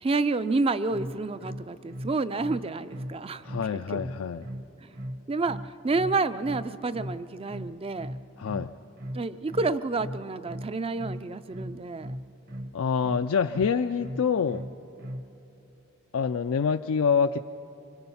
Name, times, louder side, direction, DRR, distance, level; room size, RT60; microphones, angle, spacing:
voice 1, 0.0-3.4 3.9-4.0 4.8-4.9 5.3-5.6 5.8-8.1 9.1-12.1, right 3 dB, 25° right, 14 dB, 0.4 m, -29 dB
sound 1, 0.9-15.4, equal, 40° right, 0.9 m, -38 dB
voice 2, 3.4-4.5 8.4-8.7 12.7-14.6 16.1-17.4, left 6 dB, 70° left, 8 dB, 0.4 m, -26 dB
25.0 x 23.5 x 5.6 m, 3.0 s
head